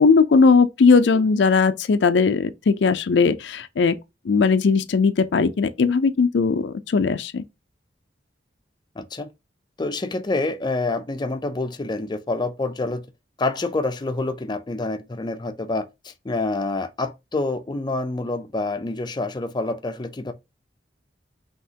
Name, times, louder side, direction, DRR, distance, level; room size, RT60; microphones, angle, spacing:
voice 1, 0.0-4.0 4.3-7.4, left 4 dB, 85° left, 0.4 m, -18 dB
voice 2, 9.0-9.3 9.8-13.0 13.4-20.3, left 2 dB, 25° left, 0.4 m, -27 dB
5.5 x 2.9 x 2.8 m
head